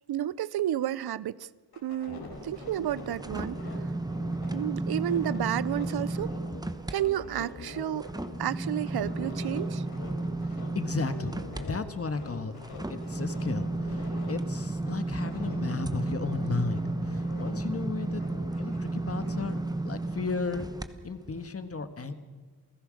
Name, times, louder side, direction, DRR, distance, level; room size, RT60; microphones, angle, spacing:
voice 1, 0.1-1.5 1.8-3.6 4.5-6.3 6.9-8.1 8.4-9.8, right 12 dB, 75° right, 0.6 m, -31 dB
sound 1, 1.7-6.6 6.9-11.8 12.1-14.3 14.7-17.7 17.9-19.5, left 3 dB, 75° left, 4.5 m, -44 dB
sound 2, 2.3-7.0 7.4-20.9 21.3-21.5, right 2 dB, 10° right, 1.0 m, -33 dB
voice 2, 10.7-12.5 12.9-18.2 18.6-20.6 21.0-22.1, left 4 dB, 35° left, 1.5 m, -34 dB
29.0 x 16.0 x 6.4 m
wide cardioid pair, 115°, 39 cm